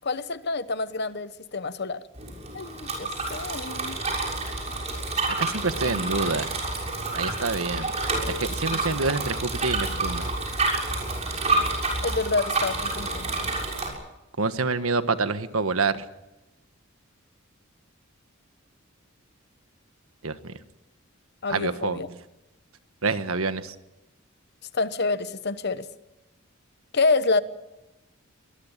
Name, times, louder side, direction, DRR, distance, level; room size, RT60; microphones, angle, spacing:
voice 1, 0.0-2.0 2.5-4.0 5.8-6.0 8.7-8.8 12.0-13.3 21.4-22.1 24.7-25.9 26.9-27.4, left 3 dB, 50° left, 13 dB, 1.1 m, -27 dB
Bicycle, 2.1-13.9, right 3 dB, 30° right, 6.7 m, -29 dB
voice 2, 5.4-6.6 7.1-7.9 8.2-10.3 14.4-16.0 20.2-20.5 21.5-22.0 23.0-23.7, right 3 dB, 85° right, 11 dB, 1.5 m, -27 dB
24.5 x 20.5 x 7.4 m, 0.95 s
head